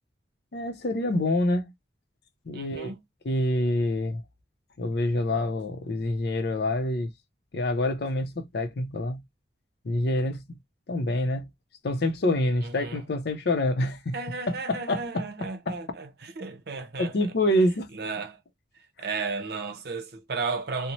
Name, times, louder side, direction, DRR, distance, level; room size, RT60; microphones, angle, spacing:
voice 1, 0.5-1.7 2.5-2.9 3.2-4.2 4.8-7.1 7.5-9.2 9.8-10.4 10.9-11.5 11.8-14.2 14.5-15.2 15.7-15.8 17.0-17.9, left 1 dB, 60° left, 0.6 m, -26 dB
voice 2, 2.5-3.0 12.6-13.0 14.1-17.3 17.9-18.4 19.0-20.9, right 4 dB, 55° right, 0.7 m, -34 dB
2.7 x 2.0 x 3.0 m
head